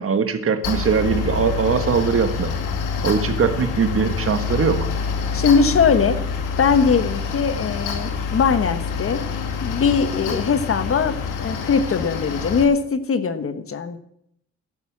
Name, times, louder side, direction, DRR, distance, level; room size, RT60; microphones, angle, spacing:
voice 1, 0.0-2.5 3.0-4.9, right 6 dB, 45° right, 8 dB, 1.7 m, -21 dB
Mechanical fan, 0.6-12.6, left 5 dB, 90° left, 2.1 m, -26 dB
voice 2, 5.3-6.2 6.6-9.3 9.6-14.0, left 5 dB, 45° left, 11 dB, 1.3 m, -20 dB
13.0 x 11.0 x 7.4 m, 0.74 s
cardioid pair, 90°, 30 cm